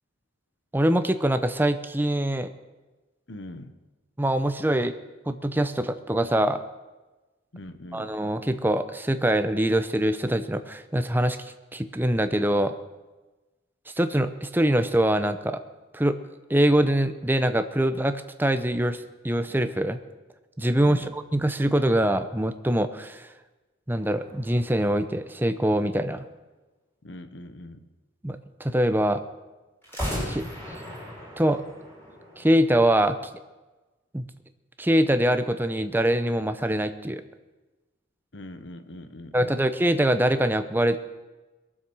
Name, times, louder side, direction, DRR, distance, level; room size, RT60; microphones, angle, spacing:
voice 1, 0.7-2.5 4.2-5.0 5.3-6.6 7.9-11.4 11.7-12.7 14.0-15.6 15.9-16.2 16.5-19.0 19.2-20.0 20.6-23.3 23.9-26.2 28.2-29.2 30.3-30.8 31.4-31.6 32.4-33.2 34.1-34.3 34.8-37.2 39.3-41.0, right 1 dB, 10° right, 10 dB, 0.7 m, -23 dB
voice 2, 3.3-3.8 7.5-8.1 20.8-21.1 27.0-27.9 38.3-39.6, left 1 dB, 65° left, 10 dB, 1.1 m, -42 dB
sound 1, 24.0-25.8 29.8-32.9, equal, 10° left, 4.7 m, -37 dB
21.5 x 7.5 x 6.2 m, 1.2 s
head